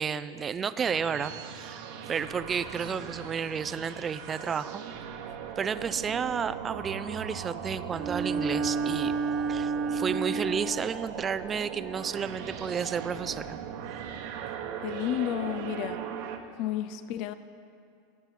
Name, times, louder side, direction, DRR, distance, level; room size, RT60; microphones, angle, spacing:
voice 1, 0.0-1.8 2.1-4.8 5.6-9.1 9.5-13.6, right 6 dB, 25° right, 14 dB, 0.4 m, -32 dB
sound 1, 0.8-16.4, right 8 dB, 60° right, 1.2 m, -39 dB
Bowed string instrument, 7.9-11.0, right 4 dB, 40° right, 1.2 m, -30 dB
voice 2, 14.8-16.1 16.6-17.3, left 12 dB, 55° left, 12 dB, 0.5 m, -31 dB
15.0 x 5.9 x 9.8 m, 2.5 s
supercardioid pair, 130°, 0 cm